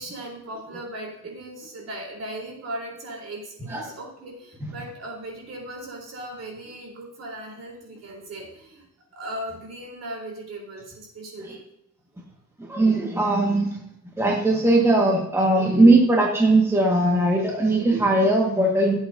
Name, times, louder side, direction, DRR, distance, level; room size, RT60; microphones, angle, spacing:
voice 1, 0.0-8.9 9.1-11.6, right 1 dB, 55° right, 0 dB, 3.8 m, -37 dB
voice 2, 12.7-13.8 14.2-19.0, right 2 dB, 10° right, -2 dB, 1.7 m, -19 dB
16.5 x 7.9 x 2.7 m, 0.81 s
cardioid pair, 135°, 31 cm